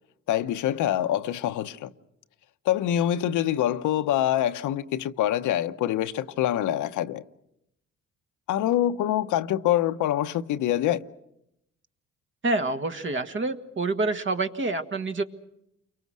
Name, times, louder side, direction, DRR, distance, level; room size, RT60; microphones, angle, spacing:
voice 1, 0.3-1.9 2.6-7.2 8.5-11.0, left 12 dB, 85° left, 0.9 m, -25 dB
voice 2, 12.4-15.2, right 2 dB, 40° right, 1.8 m, -27 dB
29.5 x 23.5 x 6.3 m
cardioid pair, 90°, 30 cm